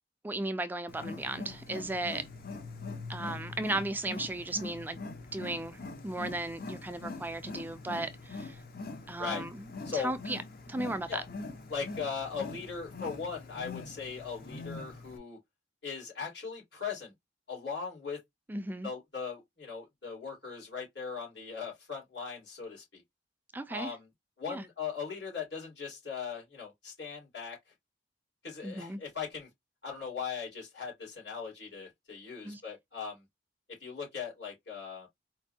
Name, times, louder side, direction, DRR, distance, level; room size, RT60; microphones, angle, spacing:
voice 1, 0.2-2.3 3.1-5.0 5.3-8.6 9.1-9.5 9.9-10.4 10.7-11.2 18.5-18.9 23.5-23.9 24.5-24.6 28.6-29.0 32.4-32.6, right 2 dB, 10° right, 0.3 m, -35 dB
Wild animals, 0.9-15.2, left 3 dB, 55° left, 0.8 m, -43 dB
voice 2, 11.7-15.4 15.8-17.1 17.5-18.2 18.8-23.0 23.7-24.1 24.4-27.6 28.4-29.5 29.8-33.2 33.8-35.1, left 6 dB, 80° left, 2.9 m, -39 dB
4.3 x 2.6 x 2.7 m
head